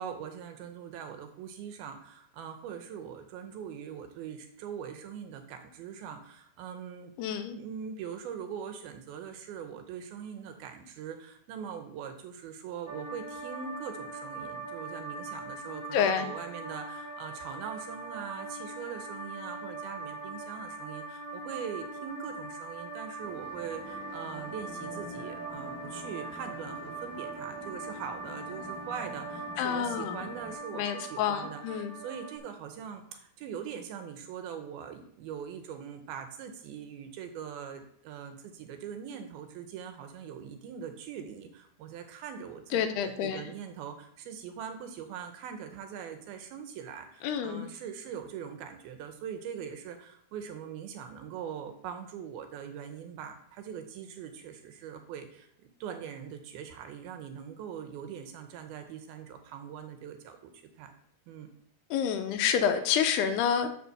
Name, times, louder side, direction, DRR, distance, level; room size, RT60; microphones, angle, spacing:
voice 1, 0.0-7.1 7.5-60.9 61.3-61.5, right 8 dB, 75° right, 7 dB, 2.5 m, -42 dB
voice 2, 7.2-7.6 15.9-16.3 29.6-30.3 30.7-31.9 42.7-43.4 47.2-47.7 61.9-63.7, left 8 dB, 90° left, 7 dB, 2.7 m, -28 dB
sound 1, 12.9-32.4, right 3 dB, 25° left, 0.8 m, -41 dB
sound 2, 23.2-30.5, equal, 25° right, 1.5 m, -47 dB
6.8 x 5.4 x 6.6 m, 0.68 s
omnidirectional pair, 4.7 m